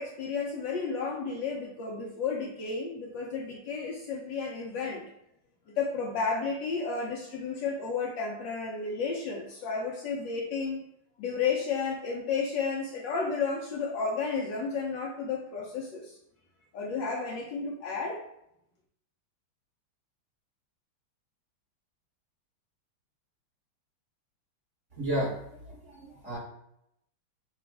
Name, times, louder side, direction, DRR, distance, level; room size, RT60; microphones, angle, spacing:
voice 1, 0.0-5.0 5.7-10.8 11.2-16.1 16.7-18.2, left 5 dB, 70° left, -1 dB, 1.2 m, -32 dB
voice 2, 25.0-26.4, right 1 dB, 40° right, -6 dB, 1.2 m, -33 dB
5.8 x 2.4 x 3.4 m, 0.77 s
omnidirectional pair, 2.4 m